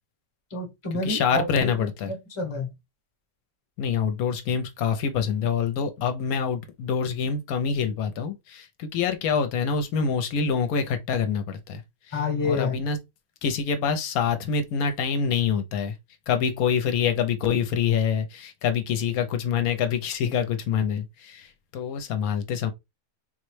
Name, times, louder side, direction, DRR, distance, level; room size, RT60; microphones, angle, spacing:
voice 1, 0.5-1.7 2.1-2.7 12.1-12.8, left 3 dB, 25° left, 0.9 m, -28 dB
voice 2, 1.0-2.1 3.8-11.8 12.1-13.0 13.4-15.9 16.3-22.7, left 6 dB, 80° left, 1.0 m, -26 dB
3.8 x 2.1 x 3.1 m
omnidirectional pair, 1.5 m